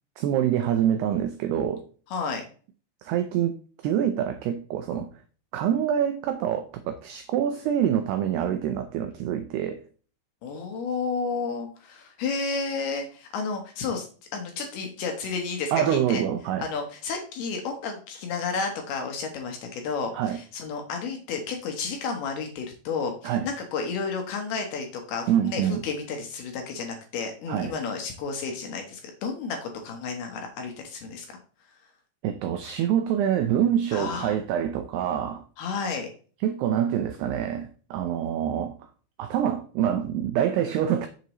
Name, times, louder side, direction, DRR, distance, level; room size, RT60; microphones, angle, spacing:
voice 1, 0.2-1.8 3.0-5.1 5.5-9.8 15.7-16.7 20.1-20.4 23.2-23.5 25.3-25.8 27.5-27.7 32.2-35.4 36.4-38.9 39.2-41.1, right 10 dB, 90° right, 2.3 m, -26 dB
voice 2, 2.1-2.4 4.9-5.0 10.4-14.1 14.3-16.2 16.6-31.4 33.9-34.4 35.6-36.1, left 5 dB, 70° left, 2.6 m, -32 dB
8.3 x 7.3 x 3.0 m
omnidirectional pair, 5.4 m